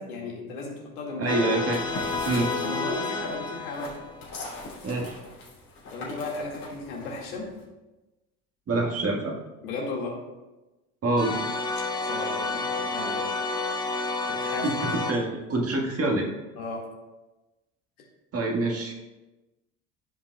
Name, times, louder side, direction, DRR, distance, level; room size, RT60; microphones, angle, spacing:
voice 1, 0.0-1.4 2.1-4.0 5.9-7.5 9.6-10.2 12.0-13.3 14.4-14.7 16.6-16.8, left 2 dB, 70° left, -1 dB, 2.1 m, -35 dB
voice 2, 1.2-1.8 2.2-2.5 4.8-5.2 8.7-9.4 11.0-11.4 14.6-16.3 18.3-18.9, right 2 dB, 30° right, 0 dB, 1.7 m, -26 dB
sound 1, 1.3-4.4 11.2-15.1, left 3 dB, 10° left, 0.7 m, -30 dB
sound 2, 1.6-7.6, left 2 dB, 45° left, 2.8 m, -41 dB
14.0 x 5.6 x 2.3 m, 1.1 s
hypercardioid pair, 70°, 45 cm